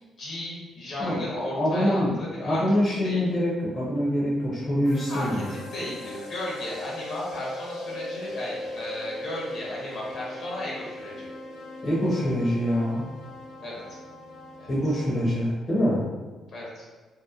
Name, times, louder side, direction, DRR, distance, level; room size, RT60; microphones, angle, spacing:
voice 1, 0.2-2.6 3.0-3.2 5.1-11.3 13.6-14.0 14.6-14.7 16.5-16.9, left 1 dB, 65° left, -4 dB, 0.9 m, -35 dB
voice 2, 1.0-2.1 2.4-5.5 11.8-13.0 14.7-16.1, equal, 35° left, -7 dB, 0.7 m, -25 dB
sound 1, 4.8-15.4, left 2 dB, 80° left, 0.5 m, -39 dB
2.8 x 2.1 x 2.4 m, 1.3 s
cardioid pair, 90°, 0 cm